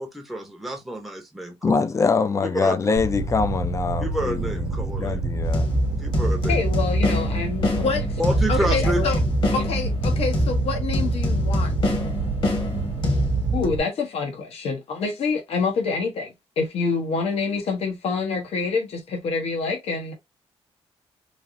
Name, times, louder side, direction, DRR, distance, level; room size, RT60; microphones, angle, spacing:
voice 1, 0.0-1.8 2.4-2.8 4.0-5.2 6.0-6.6 8.2-9.0, right 1 dB, ahead, 0.7 m, -29 dB
voice 2, 1.6-5.7, left 5 dB, 30° left, 0.4 m, -24 dB
Fire, 3.0-13.8, right 2 dB, 60° right, 0.6 m, -28 dB
sound 1, 5.4-13.7, equal, 50° left, 1.2 m, -24 dB
voice 3, 6.5-8.2 8.5-9.2 9.5-11.8 13.5-20.1, left 4 dB, 70° left, 0.9 m, -26 dB
3.3 x 2.4 x 2.5 m
cardioid pair, 125°, 11 cm